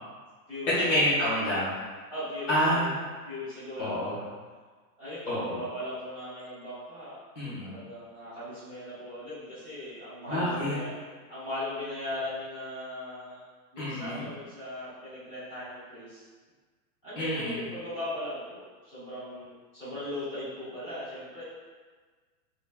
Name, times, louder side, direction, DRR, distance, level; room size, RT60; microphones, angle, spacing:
voice 1, 0.7-1.7 2.5-2.9 3.8-4.1 5.3-5.6 7.3-7.7 10.3-10.8 13.8-14.3 17.2-17.6, equal, 50° left, -9 dB, 1.4 m, -27 dB
voice 2, 2.1-2.9 3.2-4.0 5.0-7.2 7.6-11.0 11.3-13.4 13.7-16.2 17.0-21.4, left 1 dB, 10° left, -16 dB, 1.4 m, -38 dB
3.6 x 3.2 x 2.3 m, 1.4 s
supercardioid pair, 170°, 50 cm